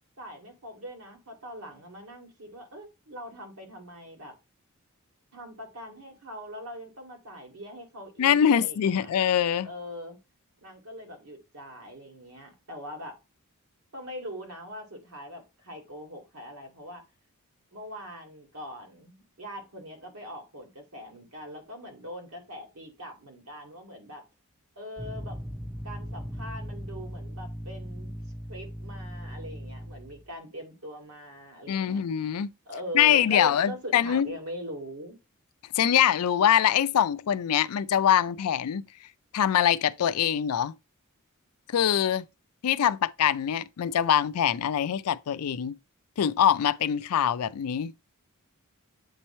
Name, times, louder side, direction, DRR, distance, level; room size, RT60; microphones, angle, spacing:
voice 1, 0.2-4.3 5.3-9.1 9.6-10.2 10.6-13.2 13.9-17.0 17.7-24.2 24.8-25.5 25.8-28.2 28.5-32.0 32.7-35.2, equal, 70° right, 2.1 m, -42 dB
voice 2, 8.2-9.7 31.7-32.5 32.9-34.3 35.7-38.9 39.3-40.7 41.7-42.2 42.6-45.7 46.2-47.9, left 9 dB, 80° left, 0.4 m, -24 dB
sound 1, 25.0-30.3, equal, 5° right, 0.5 m, -38 dB
8.0 x 3.0 x 4.3 m
head